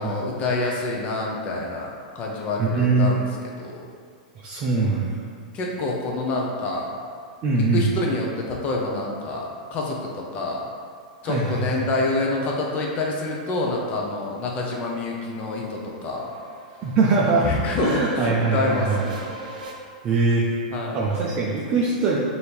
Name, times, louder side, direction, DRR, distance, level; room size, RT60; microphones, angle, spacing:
voice 1, 0.0-1.9 2.1-3.3 3.6-3.7 5.5-6.9 7.7-10.6 11.2-16.3 17.4-19.2 20.7-21.0, left 2 dB, 30° left, -2 dB, 0.6 m, -27 dB
voice 2, 2.6-3.1 4.4-5.2 7.4-7.9 11.2-11.8 16.8-17.5 17.8-19.0 20.0-20.5 20.9-22.2, right 3 dB, 30° right, -4 dB, 0.5 m, -22 dB
sound 1, 13.9-19.7, right 2 dB, 80° right, 0.6 m, -42 dB
3.4 x 2.7 x 4.4 m, 2.1 s
hypercardioid pair, 135°, 4 cm